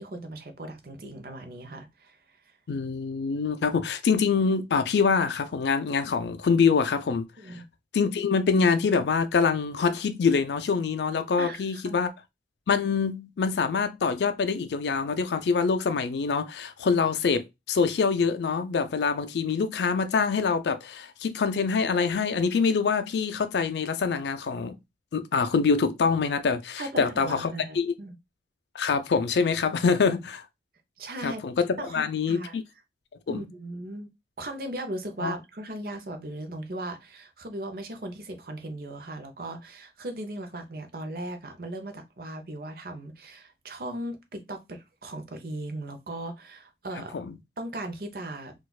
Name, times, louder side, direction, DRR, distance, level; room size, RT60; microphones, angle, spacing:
voice 1, 0.0-2.2 7.4-7.7 11.4-12.0 26.8-28.1 31.0-31.4 31.8-32.6 33.3-34.1 34.4-47.2 47.6-48.5, right 1 dB, 55° right, 0.7 m, -38 dB
voice 2, 2.7-7.3 7.9-12.1 12.7-24.7 25.1-27.9 28.7-30.4 31.2-32.6 33.3-33.4 35.2-35.4 47.1-47.3, left 5 dB, 75° left, 0.4 m, -25 dB
4.1 x 2.4 x 2.3 m
head